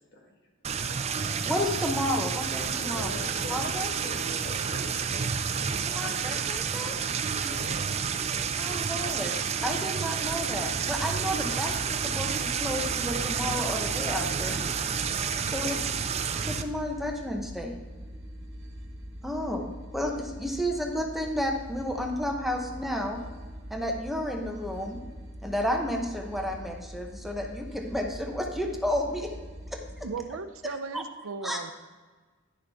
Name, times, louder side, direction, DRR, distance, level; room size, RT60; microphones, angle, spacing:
sound 1, 0.6-16.6, right 6 dB, 30° right, 0.4 m, -30 dB
voice 1, 1.4-3.1 3.5-3.9 5.8-7.0 8.5-9.3 9.6-14.6 15.4-16.0 16.4-17.8 19.2-23.2 23.7-25.0 25.4-29.3 29.7-29.8 30.9-31.0 31.4-31.6, equal, ahead, 2 dB, 0.8 m, -32 dB
voice 2, 2.8-4.9 7.3-7.9, left 2 dB, 55° left, -1 dB, 1.7 m, -42 dB
sound 2, 10.2-30.1, equal, 60° right, 1.3 m, -43 dB
voice 3, 30.0-31.7, right 4 dB, 90° right, 10 dB, 0.6 m, -36 dB
10.5 x 6.5 x 3.4 m, 1.4 s
head